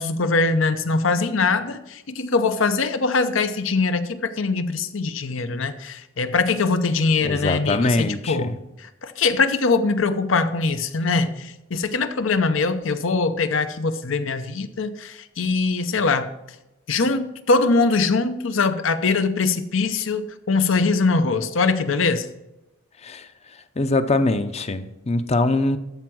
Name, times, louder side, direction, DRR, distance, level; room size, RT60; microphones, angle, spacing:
voice 1, 0.0-16.3 16.9-22.3, left 4 dB, 75° left, 10 dB, 0.8 m, -22 dB
voice 2, 7.2-8.6 23.0-23.3 23.8-25.8, left 2 dB, 30° left, 10 dB, 0.6 m, -22 dB
14.0 x 4.7 x 6.0 m, 0.93 s
head